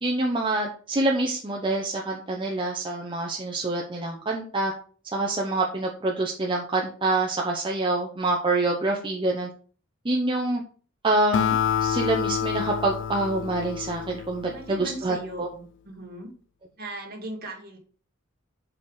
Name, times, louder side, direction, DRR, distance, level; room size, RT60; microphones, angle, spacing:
voice 1, 0.0-4.7 5.1-9.5 10.0-10.6 11.0-15.5, right 2 dB, 25° right, -1 dB, 0.8 m, -26 dB
Acoustic guitar, 11.3-14.9, left 8 dB, 60° left, 0.4 m, -28 dB
voice 2, 14.5-16.3 16.8-17.8, right 1 dB, 50° right, 1 dB, 2.2 m, -38 dB
4.9 x 4.9 x 5.4 m, 0.42 s
head